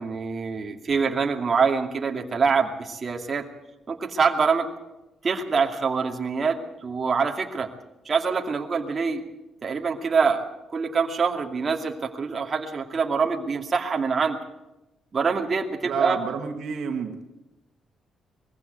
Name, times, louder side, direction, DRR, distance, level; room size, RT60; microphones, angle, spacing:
voice 1, 0.0-3.5 3.9-4.7 5.2-6.6 6.8-7.7 8.1-9.2 9.6-14.4 15.1-16.2, right 5 dB, 40° right, 2 dB, 2.5 m, -25 dB
voice 2, 15.8-17.2, right 6 dB, 70° right, 4 dB, 2.2 m, -29 dB
21.5 x 15.5 x 8.0 m, 0.98 s
cardioid pair, 90°, 0 cm